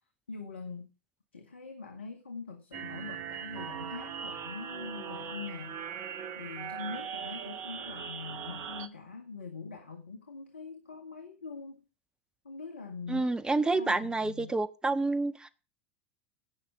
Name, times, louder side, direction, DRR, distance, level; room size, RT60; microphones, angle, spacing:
voice 1, 0.3-0.9 1.3-5.8 6.4-11.8 12.4-14.5, left 4 dB, 85° left, 1.9 m, -43 dB
sound 1, 2.7-8.9, right 8 dB, 50° right, 1.8 m, -40 dB
voice 2, 13.1-15.5, right 3 dB, 15° right, 1.3 m, -29 dB
17.0 x 6.4 x 4.9 m
hypercardioid pair, 85°, 6 cm